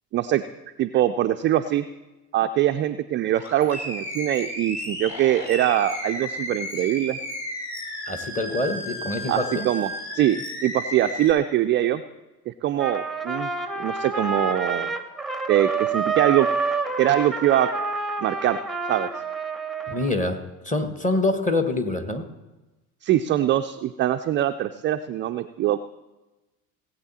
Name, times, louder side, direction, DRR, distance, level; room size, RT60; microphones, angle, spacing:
voice 1, 0.1-0.4 0.8-1.9 2.3-7.2 9.3-12.0 12.5-13.5 13.8-14.9 15.5-16.5 17.0-17.7 18.2-18.6 18.9-19.1 23.0-25.8, right 12 dB, 25° right, 7 dB, 0.3 m, -23 dB
Animal, 3.3-11.3, left 1 dB, 35° left, 3.6 m, -33 dB
voice 2, 8.1-9.7 19.9-22.2, left 2 dB, 15° left, 7 dB, 1.4 m, -25 dB
Trumpet, 12.8-20.1, right 4 dB, ahead, 0.8 m, -28 dB
18.0 x 8.3 x 4.2 m, 1.1 s
hypercardioid pair, 70°, 47 cm